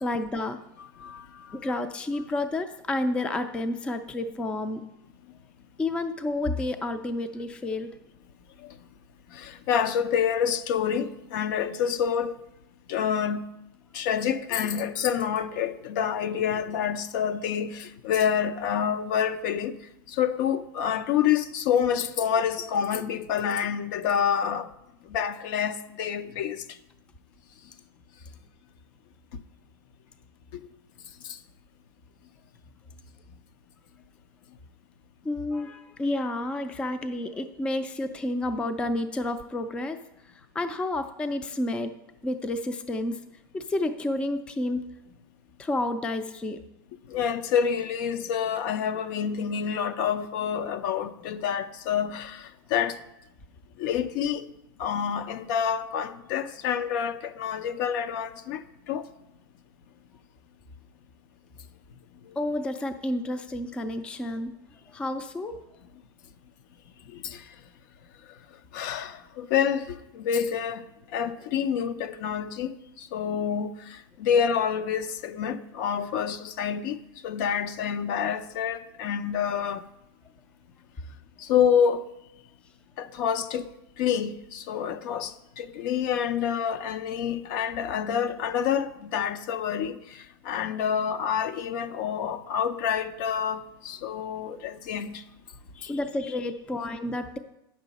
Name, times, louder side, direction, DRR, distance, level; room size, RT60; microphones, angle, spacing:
voice 1, 0.0-0.6 1.5-4.9 5.8-7.9 35.2-40.0 40.5-41.9 42.2-43.2 43.5-44.8 45.6-46.6 62.4-64.5 64.9-65.6 95.7-97.4, left 2 dB, 10° left, 0.3 m, -30 dB
voice 2, 1.0-1.6 9.3-12.4 12.9-13.5 13.9-19.8 20.1-24.7 25.1-26.6 30.5-30.7 31.2-31.4 47.1-53.0 53.8-54.5 54.8-59.1 67.2-67.4 68.7-70.8 71.1-72.7 73.0-77.0 77.2-79.8 81.4-82.1 83.0-83.7 84.0-95.2, left 8 dB, 55° left, 0.6 m, -28 dB
9.0 x 6.3 x 4.1 m
supercardioid pair, 140°, 13 cm